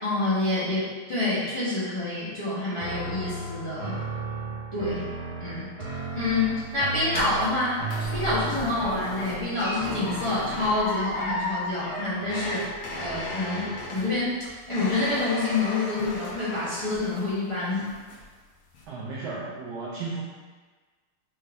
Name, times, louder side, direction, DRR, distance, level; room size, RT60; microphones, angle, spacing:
voice 1, 0.0-4.0 4.7-5.1 5.4-7.8 8.1-12.7 13.0-17.9, left 2 dB, 40° left, -11 dB, 0.4 m, -27 dB
sound 1, 2.8-10.9, right 2 dB, 30° right, 1.3 m, -35 dB
sound 2, 5.9-17.5 17.8-18.3 18.7-18.8, left 2 dB, 85° left, 1.8 m, -35 dB
voice 2, 18.9-20.2, right 3 dB, 70° right, -5 dB, 1.1 m, -34 dB
5.5 x 2.5 x 3.4 m, 1.4 s
omnidirectional pair, 2.4 m